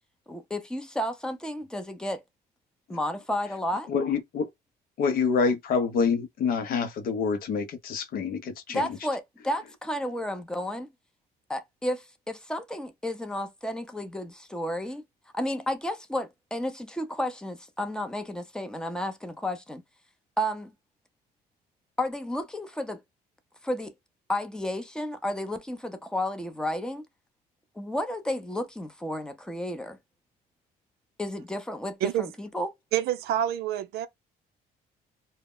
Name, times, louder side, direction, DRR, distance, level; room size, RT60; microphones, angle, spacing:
voice 1, 0.3-2.2 2.9-3.9 8.7-10.9 11.5-15.0 15.3-19.8 20.4-20.7 22.0-23.0 23.6-23.9 24.3-27.0 27.8-30.0 31.2-32.7, left 1 dB, 5° left, 0.5 m, -32 dB
voice 2, 3.9-4.5 5.0-8.9, left 5 dB, 60° left, 0.6 m, -27 dB
voice 3, 32.9-34.1, right 11 dB, 70° right, 0.4 m, -27 dB
2.0 x 2.0 x 3.6 m
cardioid pair, 110°, 17 cm